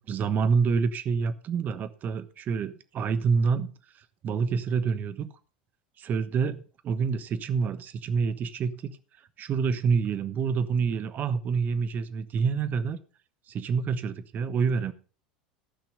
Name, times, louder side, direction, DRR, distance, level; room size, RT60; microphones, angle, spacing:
voice 1, 0.0-3.7 4.2-5.3 6.0-8.9 9.4-13.0 13.5-14.9, right 5 dB, 40° right, 14 dB, 1.2 m, -27 dB
14.0 x 5.9 x 6.6 m, 0.38 s
hypercardioid pair, 80°, 4 cm